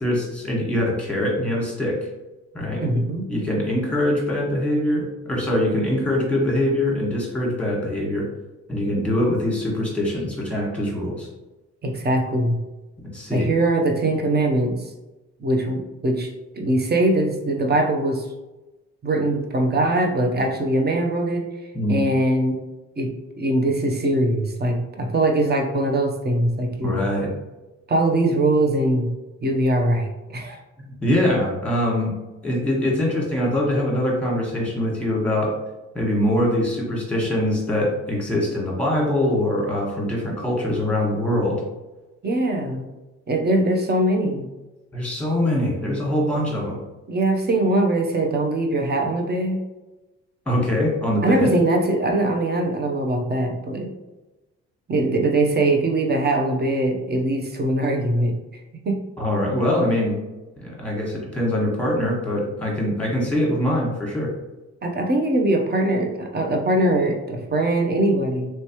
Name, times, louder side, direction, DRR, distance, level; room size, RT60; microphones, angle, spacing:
voice 1, 0.0-2.0 2.5-2.8 3.3-8.3 8.7-11.3 13.1-13.5 21.7-22.0 26.8-27.3 30.8-32.1 32.4-35.5 35.9-41.6 44.9-46.8 50.5-51.5 59.2-60.1 60.6-64.3, left 1 dB, 5° left, -3 dB, 1.5 m, -23 dB
voice 2, 2.8-3.3 11.8-12.6 13.3-14.7 15.4-18.3 19.0-21.5 21.9-22.6 23.0-23.1 23.4-27.0 27.9-29.1 29.4-30.6 42.2-42.9 43.3-44.5 47.1-49.6 51.2-53.9 54.9-58.3 58.8-59.0 64.8-68.5, right 1 dB, 35° right, 2 dB, 0.8 m, -21 dB
3.2 x 3.2 x 3.0 m, 1.1 s
cardioid pair, 90°, 30 cm